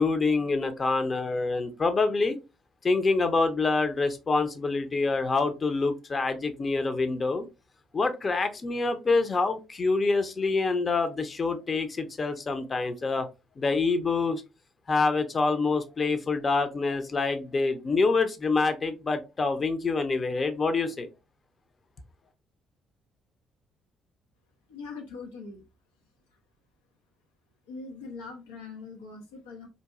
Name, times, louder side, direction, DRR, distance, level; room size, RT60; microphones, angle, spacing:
voice 1, 0.0-2.4 2.8-7.4 7.9-13.3 13.6-14.4 14.9-21.1, left 3 dB, 40° left, 0.7 m, -26 dB
voice 2, 24.7-25.6 27.7-29.7, left 4 dB, 85° left, 0.6 m, -42 dB
4.0 x 2.6 x 2.4 m
hypercardioid pair, 50°, 0 cm